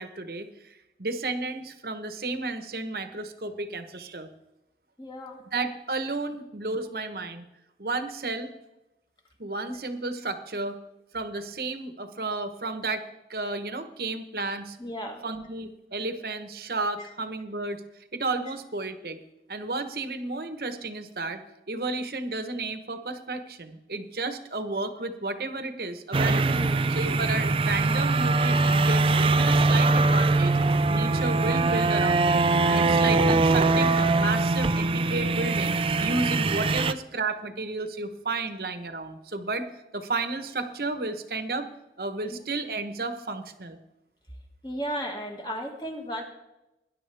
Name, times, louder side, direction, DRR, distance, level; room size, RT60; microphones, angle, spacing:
voice 1, 0.0-4.3 5.5-7.4 7.8-8.5 9.4-10.8 11.1-13.0 13.3-14.8 15.2-17.8 18.1-19.2 19.5-21.4 21.7-26.6 26.9-30.6 30.9-39.7 39.9-41.7 42.0-43.8, right 3 dB, 55° right, 9 dB, 1.1 m, -32 dB
voice 2, 5.0-5.4 14.8-15.2 17.0-17.1 26.5-26.9 42.3-42.4 44.6-46.2, equal, 25° left, 1 dB, 2.0 m, -34 dB
sound 1, 26.1-36.9, right 3 dB, 30° right, 0.4 m, -22 dB
20.0 x 11.0 x 3.4 m, 0.93 s
head